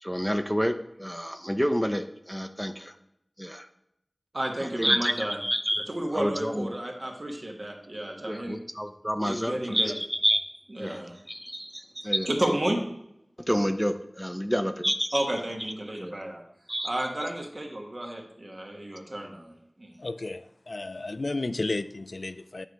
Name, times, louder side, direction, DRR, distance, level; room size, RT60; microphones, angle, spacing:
voice 1, 0.0-2.9 3.4-3.7 4.6-5.9 6.1-6.7 8.3-10.4 10.8-11.0 11.3-11.6 12.0-12.3 13.5-15.2 16.0-16.2 16.7-16.9, equal, ahead, 8 dB, 0.5 m, -28 dB
voice 2, 4.3-5.4 5.9-8.6 9.2-9.9 10.7-11.2 11.5-12.8 15.1-16.4 16.8-20.0, right 1 dB, 55° right, 1 dB, 1.3 m, -32 dB
voice 3, 20.0-22.7, left 2 dB, 85° left, 11 dB, 0.3 m, -33 dB
9.1 x 3.3 x 5.1 m, 0.79 s
wide cardioid pair, 50°, 0 cm